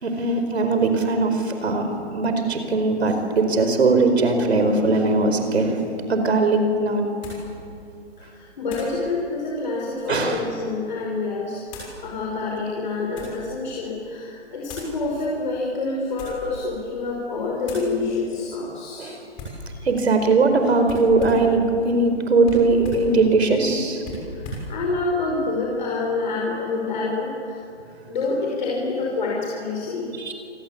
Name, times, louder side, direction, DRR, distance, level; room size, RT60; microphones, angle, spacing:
voice 1, 0.0-5.8 6.1-7.1 10.1-10.4 19.0-19.2 19.8-24.0 30.2-30.3, right 3 dB, 65° right, 6 dB, 4.8 m, -20 dB
sound 1, 7.2-7.5 8.7-9.0 9.7-10.4 11.7-12.0 12.7-13.4 14.6-15.0 16.0-16.5 16.9-17.2 17.6-17.9 19.4-19.7 20.8-21.5 22.4-23.1 24.0-24.7, left 1 dB, 15° left, 6.6 m, -37 dB
voice 2, 8.2-19.1 24.3-27.6 28.1-30.3, left 3 dB, 40° left, -2 dB, 5.5 m, -27 dB
27.5 x 23.5 x 8.8 m, 2.6 s
hypercardioid pair, 170°, 35 cm